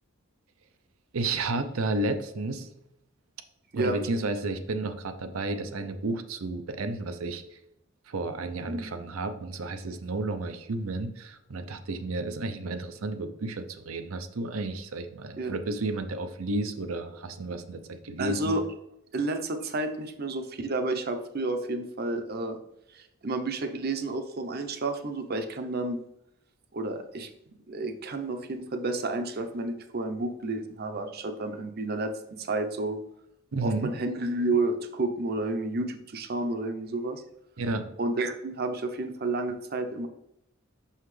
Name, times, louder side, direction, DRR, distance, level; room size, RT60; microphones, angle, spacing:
voice 1, 1.1-2.7 3.7-7.4 8.1-18.6 33.5-33.9 37.6-37.9, right 2 dB, 85° right, 8 dB, 0.6 m, -32 dB
voice 2, 18.2-18.6 19.1-22.6 22.9-26.0 26.7-27.3 27.7-33.0 33.6-37.2 38.0-40.1, right 2 dB, 50° right, 7 dB, 0.7 m, -31 dB
5.7 x 5.6 x 3.2 m, 0.80 s
head